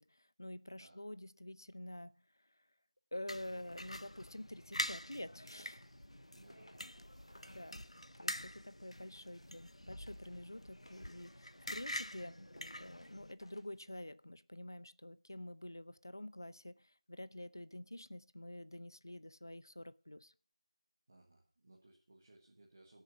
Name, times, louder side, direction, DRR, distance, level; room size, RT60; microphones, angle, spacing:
voice 1, 0.0-2.2 3.1-5.8 7.5-7.9 8.2-12.4 12.8-20.3, left 1 dB, 40° left, 0.5 m, -48 dB
voice 2, 0.8-1.1 6.3-7.8 21.1-23.0, right 2 dB, 20° right, 1.3 m, -64 dB
sound 1, 3.3-13.3, left 1 dB, 85° left, 0.8 m, -46 dB
sound 2, 3.6-14.1, left 1 dB, 60° left, 2.2 m, -66 dB
14.0 x 6.8 x 5.9 m
figure-of-eight pair, 175°, 3 cm